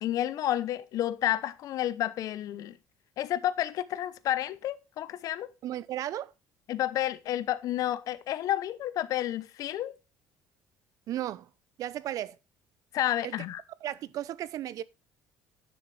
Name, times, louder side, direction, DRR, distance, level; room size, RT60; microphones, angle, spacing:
voice 1, 0.0-2.8 3.2-5.5 6.7-9.9 12.9-13.6, left 12 dB, 60° left, 0.7 m, -30 dB
voice 2, 5.6-6.3 11.1-11.5 11.8-12.4 13.2-13.3 13.8-14.8, right 12 dB, 60° right, 0.6 m, -34 dB
10.0 x 6.9 x 3.3 m
cardioid pair, 105°, 7 cm